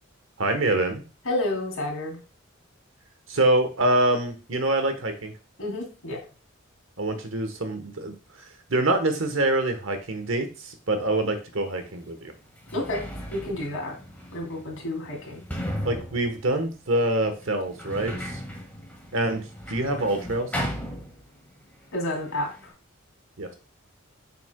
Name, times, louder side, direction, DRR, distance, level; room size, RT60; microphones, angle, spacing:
voice 1, 0.4-1.0 3.3-5.3 7.0-8.1 8.7-12.3 15.8-18.4 19.1-20.5 23.4-23.5, right 1 dB, 65° right, 7 dB, 1.1 m, -25 dB
voice 2, 1.2-2.2 5.6-6.2 12.7-13.0 13.3-13.9 14.3-15.4 21.9-22.7, left 1 dB, 80° left, 0 dB, 2.8 m, -30 dB
Sliding door, 11.7-11.8 12.5-21.6 21.9-22.7, equal, 10° left, 1.7 m, -36 dB
7.3 x 5.9 x 2.2 m, 0.34 s
head